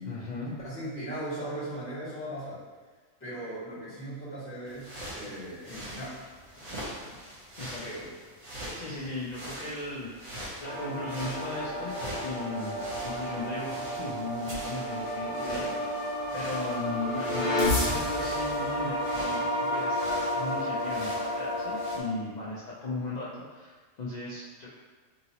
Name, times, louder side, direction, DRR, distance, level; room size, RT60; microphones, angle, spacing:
voice 1, 0.0-0.5 7.6-7.8 8.8-15.6 16.3-24.7, left 2 dB, 90° left, -7 dB, 0.3 m, -37 dB
voice 2, 0.6-2.6 3.2-6.2 6.5-7.2 7.8-8.1 8.8-9.0 15.4-15.8 16.2-16.4, right 1 dB, 10° left, -14 dB, 1.5 m, -39 dB
sound 1, 4.6-22.0, equal, 60° right, 1.2 m, -43 dB
sound 2, 10.6-22.0, equal, 65° left, 1.2 m, -31 dB
2.8 x 2.8 x 2.7 m, 1.4 s
omnidirectional pair, 1.4 m